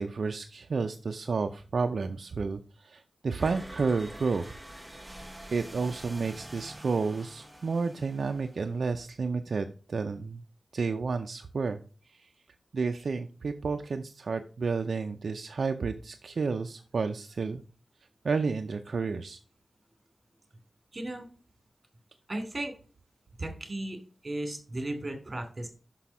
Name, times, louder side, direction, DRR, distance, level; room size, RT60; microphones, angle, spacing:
voice 1, 0.0-4.6 4.9-5.0 5.5-10.4 10.7-11.8 12.2-12.3 12.7-17.6 18.2-19.4, right 4 dB, 75° right, 6 dB, 0.5 m, -31 dB
sound 1, 3.4-8.9, right 1 dB, 5° right, 1.1 m, -46 dB
voice 2, 20.9-21.3 22.3-22.7 23.4-25.7, right 1 dB, 40° right, 5 dB, 2.7 m, -35 dB
6.1 x 5.8 x 4.7 m, 0.37 s
cardioid pair, 55°, 0 cm